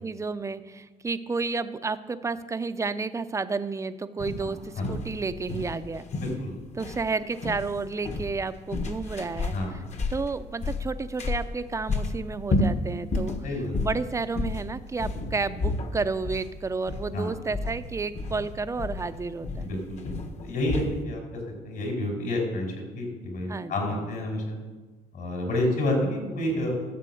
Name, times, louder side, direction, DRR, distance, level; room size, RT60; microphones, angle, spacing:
voice 1, 0.0-6.1 6.8-9.5 10.1-13.3 13.8-19.7 23.5-24.0, right 4 dB, 20° right, 11 dB, 0.6 m, -31 dB
sound 1, 4.2-21.0, left 2 dB, 40° left, 1.4 m, -32 dB
voice 2, 4.4-4.8 6.1-6.5 9.5-9.9 13.4-13.7 17.1-17.3 19.6-20.1 20.4-24.6 25.1-26.8, left 1 dB, 65° left, 1 dB, 5.3 m, -29 dB
13.0 x 6.8 x 7.7 m, 1.2 s
cardioid pair, 110°, 17 cm